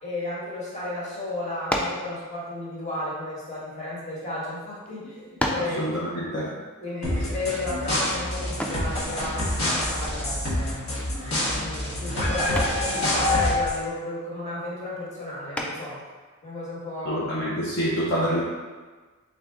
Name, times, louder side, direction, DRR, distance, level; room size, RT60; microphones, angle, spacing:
voice 1, 0.0-5.8 6.8-11.2 11.5-16.0 16.4-17.2, left 2 dB, 30° left, -7 dB, 1.3 m, -33 dB
sound 1, 1.7-2.1 3.0-4.2 4.9-5.0 5.4-5.8 8.6-8.9 10.8-11.2 11.6-11.9 12.6-12.9 15.5-16.0, left 1 dB, 5° left, 0.3 m, -30 dB
voice 2, 5.6-6.6 17.1-18.4, equal, 55° left, -6 dB, 0.6 m, -27 dB
sound 2, 7.0-13.8, left 1 dB, 70° left, 1.2 m, -26 dB
3.8 x 3.3 x 3.4 m, 1.4 s
head